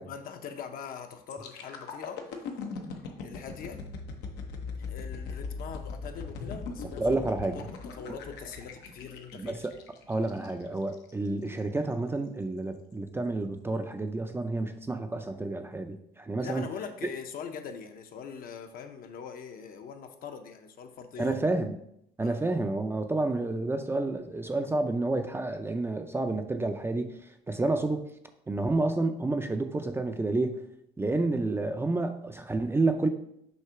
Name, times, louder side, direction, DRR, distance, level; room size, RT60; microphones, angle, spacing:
voice 1, 0.1-2.2 3.2-3.8 4.8-7.1 7.5-9.6 16.4-21.4 22.2-22.5 27.6-27.8, left 6 dB, 60° left, 6 dB, 0.8 m, -42 dB
sound 1, 1.3-11.1 11.6-11.8, left 4 dB, 85° left, 0.9 m, -40 dB
voice 2, 7.0-7.7 9.3-9.7 10.1-16.7 21.2-21.8 22.2-27.2 27.5-28.0 28.5-30.6 31.0-33.1, right 2 dB, 15° right, 7 dB, 0.4 m, -29 dB
6.5 x 2.8 x 5.7 m, 0.74 s
cardioid pair, 110°, 17 cm